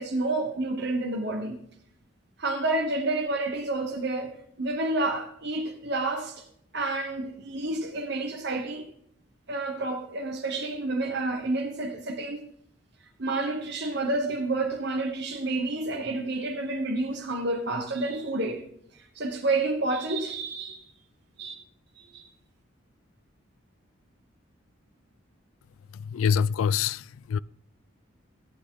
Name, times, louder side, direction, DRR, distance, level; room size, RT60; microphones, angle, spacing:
voice 1, 0.0-1.6 2.4-6.4 6.7-8.9 9.5-12.4 13.2-18.6 18.9-20.8 21.4-21.5 22.0-22.2, right 2 dB, 55° right, 1.3 m, -29 dB
voice 2, 25.9-27.4, left 7 dB, 80° left, 0.3 m, -26 dB
14.5 x 8.9 x 3.9 m
head